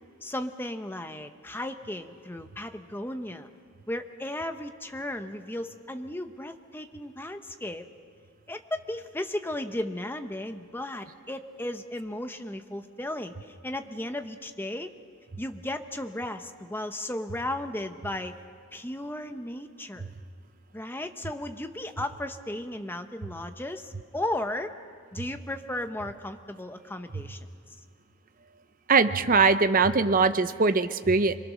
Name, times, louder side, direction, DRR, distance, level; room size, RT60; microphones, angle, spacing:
voice 1, 0.2-3.5 3.9-7.8 8.5-14.9 15.4-18.3 18.7-20.1 20.7-24.7 25.1-27.4, left 1 dB, 10° left, 7 dB, 0.8 m, -35 dB
voice 2, 28.9-31.4, right 4 dB, 40° right, 11 dB, 0.7 m, -21 dB
27.5 x 21.5 x 6.4 m, 2.2 s
head